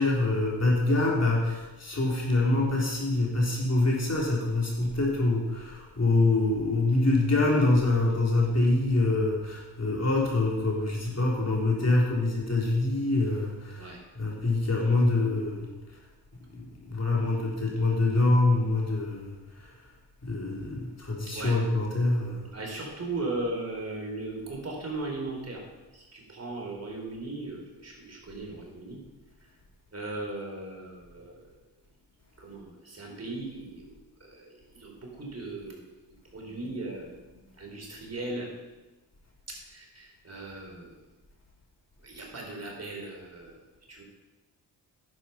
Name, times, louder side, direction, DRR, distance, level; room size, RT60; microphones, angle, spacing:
voice 1, 0.0-15.7 16.5-19.7 20.2-22.5, left 2 dB, 35° left, -3 dB, 3.6 m, -25 dB
voice 2, 22.5-25.6 25.9-29.0 29.9-31.3 32.4-35.8 36.3-38.5 39.7-40.9 42.0-43.5 43.9-44.0, right 2 dB, 35° right, -1 dB, 4.0 m, -37 dB
10.5 x 8.1 x 5.7 m, 1.1 s
cardioid pair, 60°, 43 cm